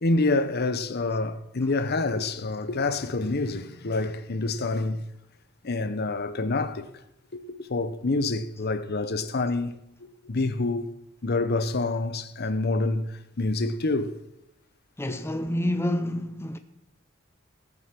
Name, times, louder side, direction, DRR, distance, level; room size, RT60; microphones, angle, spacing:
voice 1, 0.0-5.1 5.6-6.9 7.3-9.8 10.2-10.9 11.2-14.2 15.1-15.2, left 2 dB, 50° left, 0.8 m, -27 dB
voice 2, 15.0-16.6, left 1 dB, 10° left, 0.6 m, -28 dB
17.0 x 8.0 x 6.0 m
head